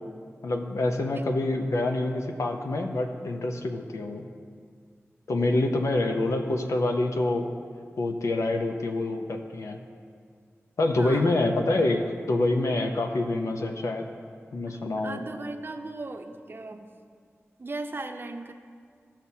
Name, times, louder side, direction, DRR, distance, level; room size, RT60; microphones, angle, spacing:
voice 1, 0.4-4.3 5.3-7.5 8.0-9.8 10.8-14.1 14.5-15.2, left 2 dB, 90° left, 4 dB, 0.7 m, -26 dB
voice 2, 11.0-11.3 14.7-16.9 17.6-18.5, right 2 dB, 45° right, 6 dB, 0.6 m, -37 dB
15.0 x 5.8 x 2.8 m, 2.1 s
wide cardioid pair, 60°, 5 cm